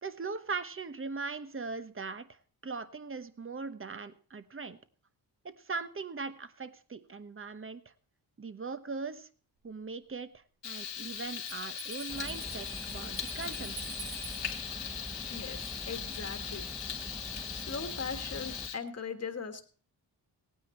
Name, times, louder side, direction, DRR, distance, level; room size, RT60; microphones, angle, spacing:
voice 1, 0.0-4.8 5.4-7.9 8.4-9.3 9.6-13.9, right 4 dB, 30° right, 12 dB, 1.0 m, -40 dB
Frying (food), 10.6-18.7, left 8 dB, 90° left, 1.4 m, -39 dB
Bell, 11.5-14.6, right 5 dB, 85° right, 5.5 m, -47 dB
sound 1, 12.1-18.7, right 1 dB, 5° right, 0.8 m, -45 dB
voice 2, 15.3-16.6 17.5-19.6, left 5 dB, 35° left, 7 dB, 1.5 m, -39 dB
17.0 x 9.4 x 4.3 m, 0.41 s
cardioid pair, 70°, 42 cm